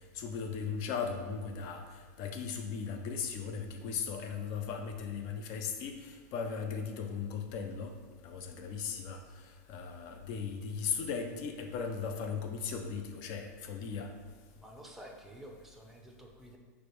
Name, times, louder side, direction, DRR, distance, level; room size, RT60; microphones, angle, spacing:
voice 1, 0.1-7.9 8.2-9.2 9.7-14.1, left 6 dB, 45° left, 5 dB, 0.5 m, -37 dB
voice 2, 14.5-16.6, right 1 dB, ahead, 0 dB, 0.6 m, -50 dB
4.8 x 2.1 x 4.6 m, 1.5 s
supercardioid pair, 135°, 9 cm